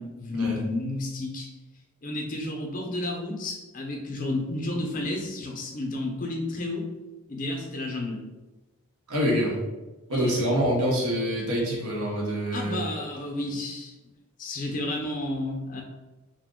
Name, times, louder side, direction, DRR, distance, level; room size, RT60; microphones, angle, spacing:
voice 1, 0.0-1.5 2.0-6.9 7.3-8.2 10.1-10.3 12.5-13.9 14.4-15.8, left 2 dB, 35° left, 0 dB, 0.5 m, -31 dB
voice 2, 9.1-9.5 10.1-12.8, equal, 85° right, -3 dB, 0.9 m, -26 dB
2.5 x 2.1 x 3.6 m, 1.1 s
head